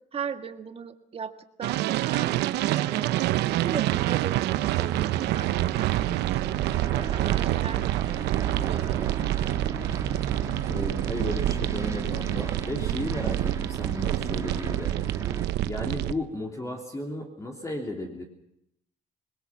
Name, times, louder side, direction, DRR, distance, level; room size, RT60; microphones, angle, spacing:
voice 1, 0.1-1.3 1.6-2.3 2.7-6.6 6.9-8.4 8.7-9.5, right 6 dB, 35° right, 8 dB, 1.8 m, -38 dB
sound 1, 1.6-16.1, right 15 dB, 80° right, 0.9 m, -27 dB
Aircraft, 4.5-15.5, right 3 dB, 20° right, 2.1 m, -38 dB
voice 2, 10.7-15.0 15.6-18.2, left 1 dB, 20° left, 1 dB, 3.1 m, -34 dB
27.5 x 21.0 x 6.0 m, 0.78 s
cardioid pair, 110°, 17 cm